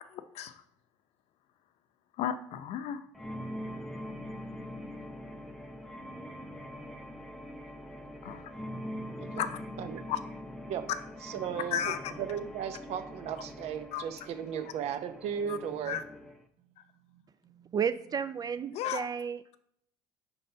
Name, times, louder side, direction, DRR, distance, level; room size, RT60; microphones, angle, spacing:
voice 1, 0.1-0.6 2.2-3.0 8.2-8.5 9.4-9.6 10.1-10.2 11.7-12.1 13.9-14.0 15.5-15.6 15.9-16.0 18.7-19.1, left 10 dB, 65° left, 12 dB, 0.7 m, -34 dB
sound 1, 3.1-16.4, equal, 5° left, 0.7 m, -43 dB
voice 2, 11.2-16.0 17.4-17.7, right 8 dB, 60° right, 9 dB, 0.9 m, -36 dB
voice 3, 17.7-19.6, right 7 dB, 35° right, 13 dB, 0.4 m, -32 dB
5.2 x 4.1 x 5.6 m, 0.71 s
supercardioid pair, 85°, 12 cm